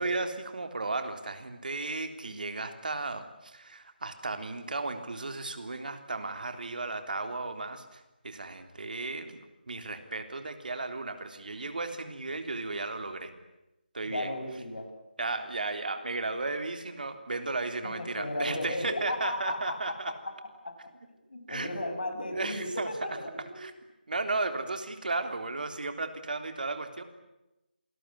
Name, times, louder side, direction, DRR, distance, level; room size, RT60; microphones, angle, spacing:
voice 1, 0.0-9.4 9.7-13.3 13.9-14.3 15.2-20.1 21.5-21.7 22.3-22.9 23.6-23.7 24.1-27.0, right 3 dB, 60° right, 7 dB, 3.6 m, -34 dB
voice 2, 14.0-14.9 17.8-20.9 21.3-23.6, left 1 dB, 60° left, 7 dB, 6.6 m, -35 dB
28.0 x 20.0 x 10.0 m, 0.97 s
figure-of-eight pair, 165°, 5 cm